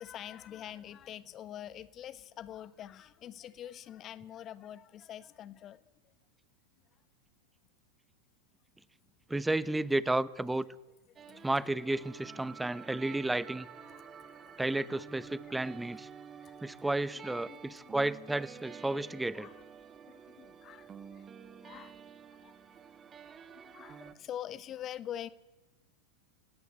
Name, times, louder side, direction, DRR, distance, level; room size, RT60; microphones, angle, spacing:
voice 1, 0.0-6.1 11.3-11.9 12.5-12.6 13.4-13.5 13.8-14.7 15.4-18.1 19.3-19.6 20.0-21.3 21.6-22.0 22.3-22.6 23.5-25.3, left 11 dB, 35° left, 15 dB, 1.2 m, -46 dB
voice 2, 9.3-10.7 11.4-13.7 14.6-16.1 16.6-19.5, right 2 dB, 5° right, 17 dB, 0.9 m, -32 dB
sound 1, 11.2-24.1, right 7 dB, 25° right, 1.4 m, -50 dB
29.0 x 16.5 x 8.3 m, 1.1 s
figure-of-eight pair, 90°, 0 cm